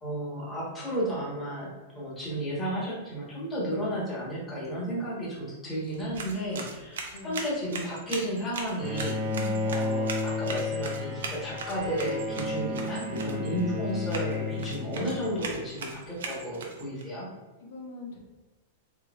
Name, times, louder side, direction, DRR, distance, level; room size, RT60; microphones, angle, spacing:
voice 1, 0.0-1.7 1.9-7.0 7.2-9.2 9.6-17.3, equal, 15° left, -7 dB, 1.3 m, -33 dB
sound 1, 5.8-17.0, right 4 dB, 90° right, 0.6 m, -40 dB
voice 2, 7.1-7.4 9.2-9.6 13.1-13.5 17.6-18.2, left 1 dB, 80° left, -1 dB, 0.8 m, -40 dB
Bowed string instrument, 8.8-15.6, left 3 dB, 30° right, 0.8 m, -32 dB
3.5 x 3.1 x 2.4 m, 1.2 s
supercardioid pair, 135°, 0 cm